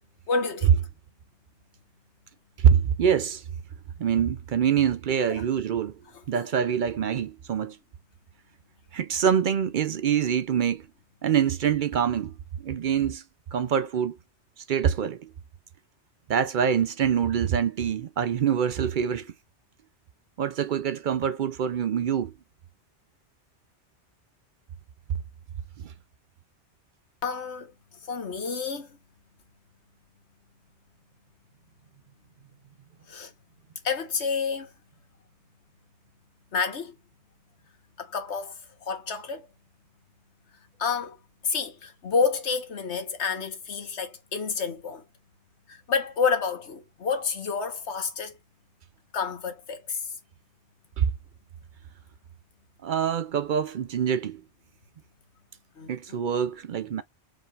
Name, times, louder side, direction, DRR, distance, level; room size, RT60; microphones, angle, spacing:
voice 1, 0.3-0.9 5.3-5.4 6.1-6.4 27.2-27.7 28.0-29.0 33.1-33.3 33.8-34.7 36.5-37.0 38.0-39.5 40.8-41.2 41.4-45.1 45.7-48.4 49.1-50.1 55.8-56.2, left 5 dB, 70° left, 1.5 m, -29 dB
voice 2, 2.6-3.4 4.0-5.9 6.3-7.8 8.9-10.9 11.2-12.4 12.6-13.2 13.5-14.1 14.6-15.3 16.3-19.3 20.4-22.4 25.8-25.9 51.0-51.1 52.8-54.4 55.9-57.0, right 8 dB, 60° right, 0.5 m, -25 dB
5.1 x 3.2 x 2.4 m
omnidirectional pair, 1.2 m